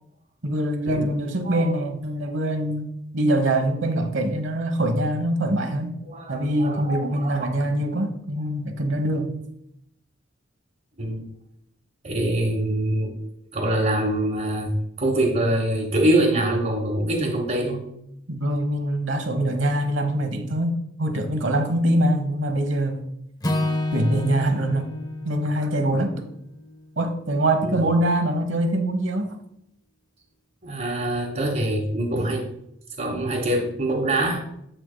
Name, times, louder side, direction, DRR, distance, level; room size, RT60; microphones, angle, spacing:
voice 1, 0.4-2.9 3.1-6.0 6.3-9.3 18.3-23.1 23.9-24.9 25.2-26.2 27.0-29.4, right 1 dB, 70° right, 1.1 m, -24 dB
voice 2, 6.1-7.5 11.0-11.2 12.0-13.1 13.5-14.7 15.0-17.8 27.6-27.8 30.6-32.5 33.0-34.4, right 1 dB, 45° right, 1.3 m, -24 dB
Acoustic guitar / Strum, 23.4-27.7, left 2 dB, 20° left, 0.6 m, -30 dB
7.9 x 7.6 x 2.2 m
head